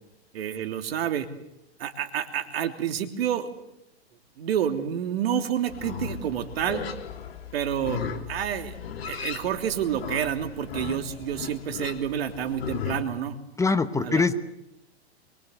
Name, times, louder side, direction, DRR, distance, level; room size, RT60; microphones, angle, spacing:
voice 1, 0.3-1.3 1.8-3.5 4.4-6.8 7.5-8.8 9.1-13.4 14.0-14.2, right 9 dB, 65° right, 7 dB, 3.2 m, -29 dB
Livestock farm animals working animals, 5.7-13.0, left 7 dB, 65° left, 3.2 m, -36 dB
voice 2, 13.6-14.3, left 4 dB, 10° left, 11 dB, 1.1 m, -23 dB
24.0 x 23.5 x 8.1 m, 0.80 s
hypercardioid pair, 115°, 33 cm